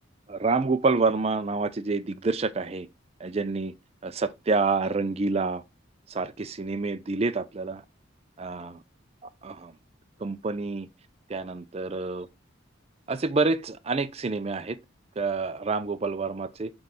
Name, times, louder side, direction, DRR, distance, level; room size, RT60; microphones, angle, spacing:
voice 1, 0.3-2.9 3.2-3.7 4.0-5.6 6.1-7.8 8.4-8.7 9.4-9.7 10.2-10.9 11.3-12.3 13.1-14.8 15.2-16.7, right 3 dB, 30° right, 0.5 m, -27 dB
6.3 x 4.8 x 4.0 m
head